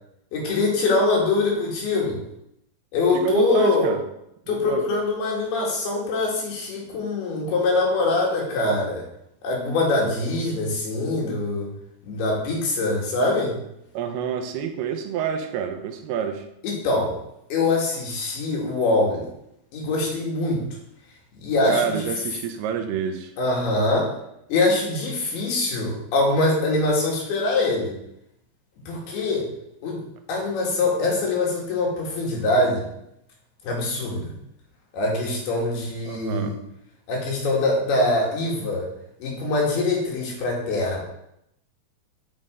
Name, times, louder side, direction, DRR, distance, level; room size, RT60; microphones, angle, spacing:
voice 1, 0.3-2.2 2.9-3.9 4.5-9.0 9.4-11.7 12.0-13.6 16.6-17.2 17.5-19.3 19.7-20.7 21.4-22.1 23.4-24.1 24.5-28.0 28.9-29.5 29.8-32.9 33.6-34.4 34.9-36.6 37.1-38.9 39.2-41.0, left 2 dB, 80° left, -2 dB, 3.8 m, -23 dB
voice 2, 3.2-4.0 4.5-4.8 13.9-16.4 21.7-23.3 36.1-36.5, right 8 dB, 90° right, 6 dB, 2.8 m, -28 dB
9.7 x 5.4 x 3.7 m, 0.79 s
omnidirectional pair, 4.4 m